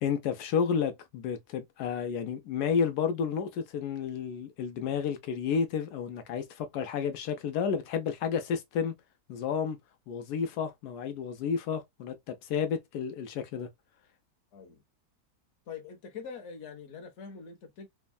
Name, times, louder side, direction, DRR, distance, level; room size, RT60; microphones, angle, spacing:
voice 1, 0.0-8.9 9.3-9.8 10.1-13.7, left 6 dB, 85° left, 1.1 m, -31 dB
voice 2, 14.5-14.8 15.7-17.9, left 6 dB, 55° left, 1.0 m, -44 dB
3.5 x 2.0 x 2.3 m
omnidirectional pair, 1.6 m